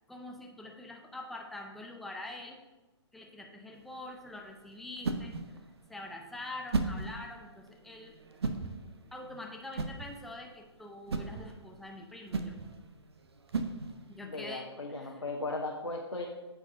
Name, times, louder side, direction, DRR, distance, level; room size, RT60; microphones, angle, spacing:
voice 1, 0.1-2.6 3.1-8.1 9.1-12.6 14.1-14.7 15.0-15.1, left 2 dB, ahead, 1 dB, 0.5 m, -45 dB
sound 1, 3.7-14.3, right 4 dB, 60° right, 0.8 m, -38 dB
voice 2, 14.3-16.3, left 2 dB, 80° left, 0 dB, 1.0 m, -37 dB
14.0 x 4.7 x 2.7 m, 1.1 s
figure-of-eight pair, 125°, 15 cm